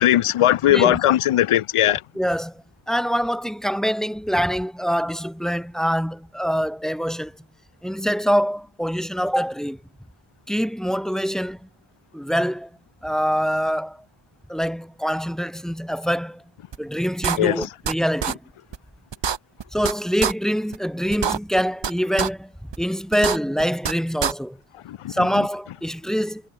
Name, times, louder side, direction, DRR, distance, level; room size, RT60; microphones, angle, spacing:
voice 1, 0.0-2.0 17.4-17.7 24.9-25.1, left 13 dB, 90° left, 2.4 m, -19 dB
voice 2, 0.6-1.0 2.2-2.5 2.9-7.3 7.8-9.8 10.5-11.7 12.1-12.7 13.0-14.0 14.5-16.4 16.8-18.4 19.7-22.5 22.8-24.6 25.1-26.4, equal, ahead, 4.0 m, -24 dB
sound 1, 16.7-16.8 17.2-17.9 18.2-18.3 18.7-18.8 19.1-19.9 20.2-20.3 20.7-20.8 21.1-21.9 22.2-22.3 22.7-22.8 23.1-23.9 24.2-24.3, right 7 dB, 55° right, 5.5 m, -24 dB
cardioid pair, 95°, 50 cm